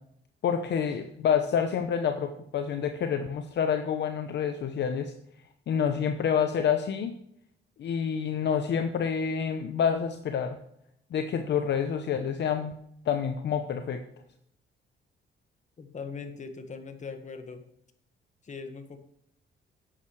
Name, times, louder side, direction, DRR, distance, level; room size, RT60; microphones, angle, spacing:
voice 1, 0.4-5.1 5.7-7.1 7.8-10.6 11.1-12.7 13.1-14.0, left 7 dB, 60° left, 7 dB, 0.8 m, -28 dB
voice 2, 15.8-17.6 18.4-19.0, left 5 dB, 35° left, 7 dB, 1.5 m, -40 dB
11.0 x 8.6 x 3.2 m, 0.74 s
cardioid pair, 90°, 20 cm